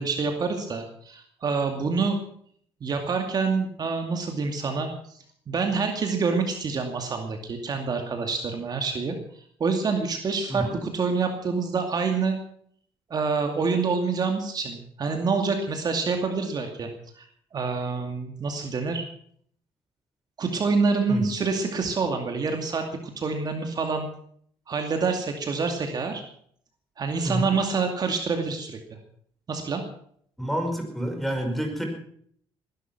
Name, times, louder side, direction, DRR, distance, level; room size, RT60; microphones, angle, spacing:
voice 1, 0.0-2.2 2.8-5.2 5.5-12.4 13.1-16.9 17.2-17.3 17.5-19.0 20.4-24.1 24.7-26.2 27.0-28.8 29.5-29.8, right 4 dB, 45° right, 4 dB, 2.4 m, -27 dB
voice 2, 10.5-10.8 21.1-21.2 27.2-27.6 30.4-31.9, equal, ahead, 4 dB, 5.1 m, -28 dB
20.0 x 11.5 x 6.1 m, 0.62 s
cardioid pair, 100°, 10 cm